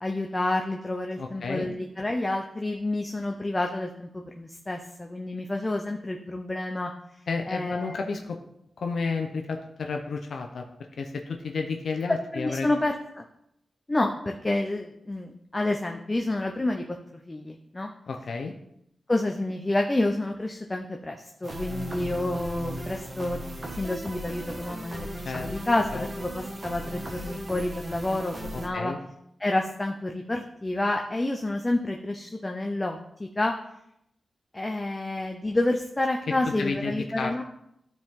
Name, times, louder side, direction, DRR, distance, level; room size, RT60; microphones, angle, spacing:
voice 1, 0.0-6.9 7.5-8.0 12.1-13.2 13.9-16.8 17.3-17.9 19.1-25.1 25.3-28.9 29.4-33.5 34.5-37.4, left 2 dB, 20° left, 2 dB, 0.7 m, -29 dB
voice 2, 1.2-1.7 7.3-8.4 8.8-10.7 11.0-12.7 18.1-18.5 25.2-25.5 25.9-26.1 28.5-29.0 36.5-37.4, left 4 dB, 75° left, 3 dB, 0.8 m, -31 dB
sound 1, 21.4-28.7, right 1 dB, 35° right, 1.4 m, -37 dB
12.0 x 4.5 x 3.8 m, 0.78 s
wide cardioid pair, 100°, 0 cm